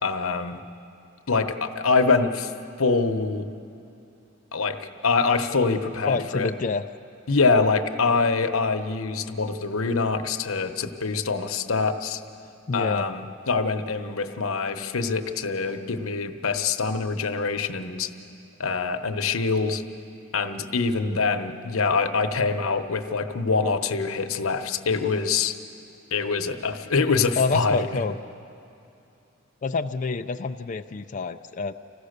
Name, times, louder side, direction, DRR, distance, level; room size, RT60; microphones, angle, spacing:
voice 1, 0.0-0.6 1.3-2.5 2.8-3.5 4.5-6.5 7.3-12.2 12.7-18.1 18.6-19.8 20.3-25.5 26.1-27.9, left 4 dB, 90° left, 7 dB, 1.0 m, -24 dB
voice 2, 6.1-6.8 12.7-13.1 27.4-28.2 29.6-31.7, left 4 dB, 35° left, 6 dB, 0.4 m, -27 dB
25.5 x 16.0 x 6.6 m, 2.7 s
head